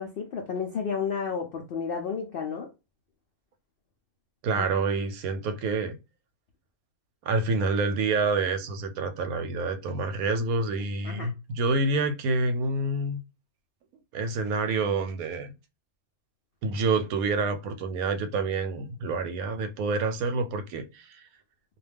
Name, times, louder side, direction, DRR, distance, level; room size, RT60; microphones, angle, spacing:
voice 1, 0.0-2.7 4.5-4.7 11.0-11.3, left 6 dB, 75° left, 0.5 m, -32 dB
voice 2, 4.4-6.0 7.2-13.2 14.1-15.5 16.6-21.2, right 3 dB, 90° right, 1.0 m, -27 dB
2.3 x 2.2 x 3.3 m
omnidirectional pair, 1.5 m